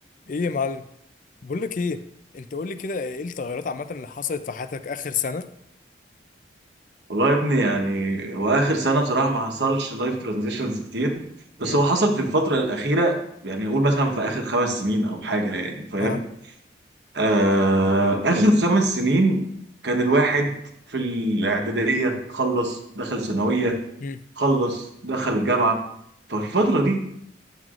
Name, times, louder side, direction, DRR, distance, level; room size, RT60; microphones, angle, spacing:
voice 1, 0.3-0.8 1.4-2.0 2.3-5.5 11.6-11.8 16.0-16.2 24.0-24.2, left 5 dB, 45° left, 11 dB, 0.4 m, -29 dB
voice 2, 7.1-11.1 11.6-13.2 13.4-16.2 17.1-19.4 19.8-20.5 20.9-23.8 24.4-25.8 26.3-27.0, right 2 dB, 65° right, 3 dB, 1.1 m, -22 dB
9.3 x 7.4 x 2.5 m, 0.73 s
head